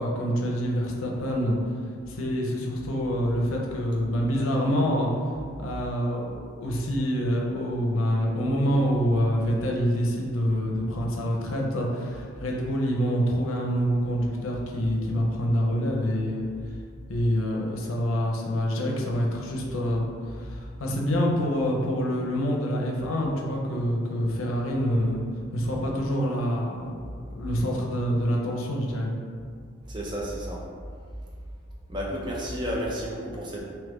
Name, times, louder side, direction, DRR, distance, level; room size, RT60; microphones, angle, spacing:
voice 1, 0.0-1.6 2.1-5.1 5.6-16.4 17.1-25.2 25.5-27.0 27.3-29.1, equal, 90° left, -1 dB, 0.5 m, -26 dB
voice 2, 29.9-30.6 31.9-33.6, equal, 25° right, -3 dB, 0.4 m, -31 dB
2.8 x 2.3 x 3.5 m, 2.1 s
head